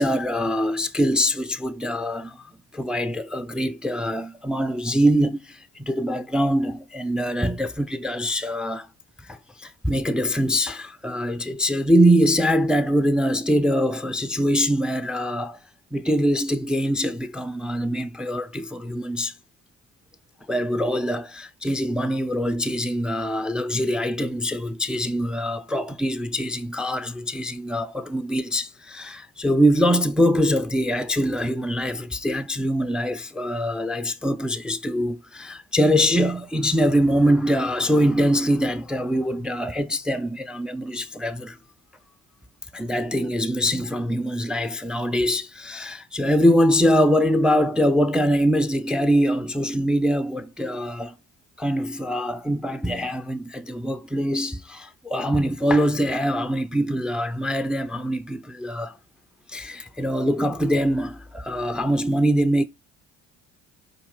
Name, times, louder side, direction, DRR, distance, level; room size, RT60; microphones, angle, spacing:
voice 1, 0.0-2.4 2.7-8.9 9.3-15.6 15.9-19.3 20.5-41.6 42.7-51.1 51.6-58.9 59.5-62.6, equal, ahead, 0.4 m, -23 dB
4.8 x 2.6 x 3.6 m
supercardioid pair, 65°, 37 cm